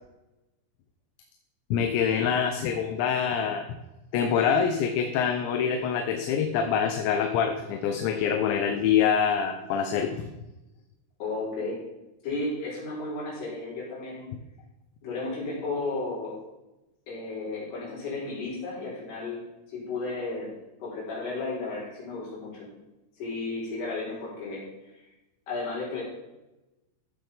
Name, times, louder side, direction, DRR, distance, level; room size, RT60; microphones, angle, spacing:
voice 1, 1.7-3.6 4.1-10.3, left 7 dB, 80° left, 5 dB, 3.0 m, -25 dB
voice 2, 11.2-11.8 12.2-14.2 15.0-16.4 17.1-20.5 20.8-22.7 23.2-24.6 25.5-26.0, left 3 dB, 60° left, -5 dB, 6.2 m, -33 dB
14.5 x 7.7 x 3.5 m, 1.0 s
omnidirectional pair, 5.2 m